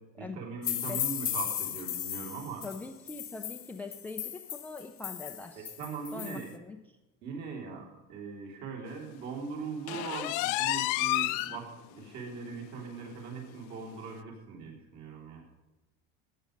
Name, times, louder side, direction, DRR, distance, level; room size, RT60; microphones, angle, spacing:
voice 1, 0.2-2.6 5.6-6.5 7.2-11.7 11.9-15.4, right 5 dB, 55° right, -1 dB, 3.7 m, -40 dB
sound 1, 0.6-6.4, left 10 dB, 25° left, 0.9 m, -36 dB
voice 2, 2.6-5.7 6.1-6.8, left 3 dB, 5° left, 6 dB, 0.4 m, -42 dB
sound 2, 9.9-11.6 12.0-12.1 12.6-12.7 13.0-13.1 14.1-14.2, left 18 dB, 60° left, 0.6 m, -30 dB
14.5 x 9.6 x 5.2 m, 1.1 s
cardioid pair, 155°, 32 cm